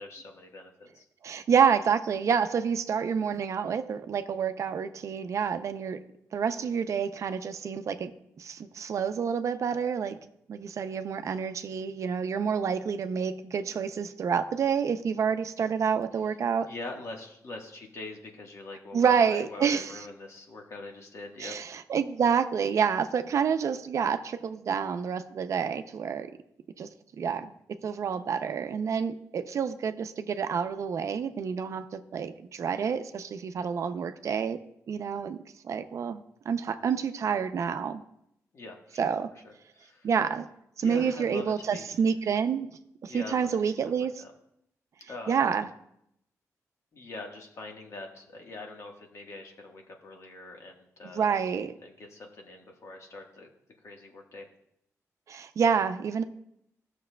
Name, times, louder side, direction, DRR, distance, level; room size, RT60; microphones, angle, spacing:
voice 1, 0.0-1.1 16.7-21.5 38.5-39.0 39.7-40.1 40.8-41.9 43.0-43.6 44.0-44.3 45.1-45.4 46.9-51.3 51.8-53.5 53.8-54.5, left 2 dB, 55° left, 1.3 m, -43 dB
voice 2, 1.2-6.0 6.3-8.1 8.4-10.2 10.5-16.7 18.9-20.1 21.4-26.3 26.8-26.9 27.2-27.5 27.8-34.6 34.9-35.4 35.6-38.0 39.0-39.3 40.0-40.5 40.8-42.7 43.0-44.2 45.3-45.7 51.0-51.7 55.3-56.2, right 7 dB, 60° right, 0.5 m, -28 dB
14.5 x 6.6 x 2.2 m
wide cardioid pair, 115°, 6 cm